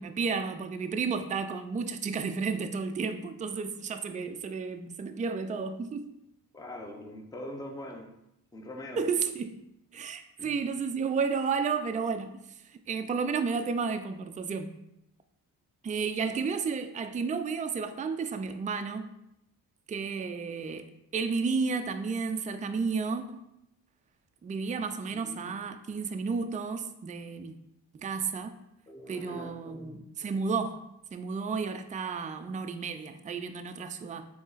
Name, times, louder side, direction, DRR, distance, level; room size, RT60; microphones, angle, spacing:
voice 1, 0.0-6.1 9.0-9.6 9.9-12.3 12.6-14.7 15.8-19.1 19.9-20.9 21.1-23.5 24.4-27.5 27.9-28.5 29.1-30.8 31.1-34.2, right 5 dB, 20° right, 8 dB, 0.3 m, -32 dB
voice 2, 6.5-8.1 8.5-9.0 10.4-10.6 25.1-25.6 28.9-30.3, left 1 dB, 10° left, 3 dB, 0.7 m, -43 dB
3.7 x 3.0 x 3.9 m, 0.82 s
supercardioid pair, 50°, 42 cm